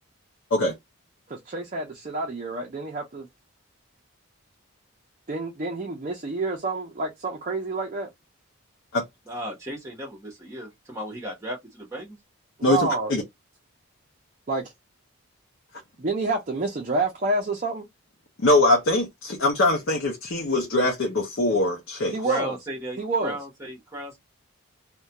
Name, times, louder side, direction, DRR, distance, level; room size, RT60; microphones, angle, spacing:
voice 1, 1.3-3.3 5.3-8.1 12.6-13.1 14.5-14.6 16.0-17.9 22.1-22.6 23.0-23.4, right 3 dB, 35° right, 0.5 m, -28 dB
voice 2, 9.3-12.2 22.2-24.2, equal, 15° right, 0.9 m, -35 dB
voice 3, 12.6-13.2 18.4-22.2, left 2 dB, 55° left, 0.6 m, -22 dB
2.3 x 2.2 x 2.8 m
head